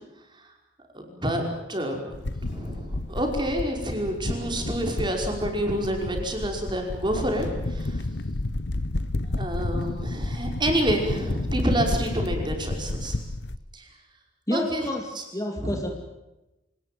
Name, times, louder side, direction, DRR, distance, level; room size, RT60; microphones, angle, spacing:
voice 1, 0.9-2.0 2.3-8.0 9.4-13.2 13.7-13.9 14.5-14.9 15.2-15.3 15.6-15.8, right 1 dB, 25° right, 2 dB, 5.5 m, -28 dB
sound 1, 2.1-13.6, left 2 dB, 70° left, 1.1 m, -31 dB
voice 2, 14.5-15.9, left 1 dB, 20° left, 3 dB, 2.7 m, -29 dB
26.5 x 19.5 x 9.4 m, 0.99 s
head